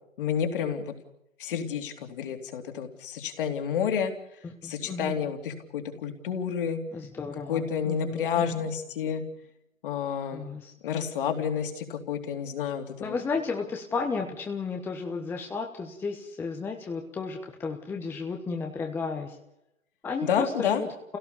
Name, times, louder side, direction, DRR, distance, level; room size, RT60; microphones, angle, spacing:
voice 1, 0.2-0.9 1.4-4.1 4.6-6.8 7.5-9.2 9.8-10.4 10.8-13.1 20.2-20.8, left 8 dB, 40° left, 6 dB, 3.0 m, -30 dB
voice 2, 4.4-5.2 6.9-8.4 10.3-10.7 13.0-19.4 20.0-20.9, left 4 dB, 5° left, 2 dB, 1.0 m, -33 dB
29.5 x 17.0 x 7.0 m, 0.87 s
figure-of-eight pair, 135°, 39 cm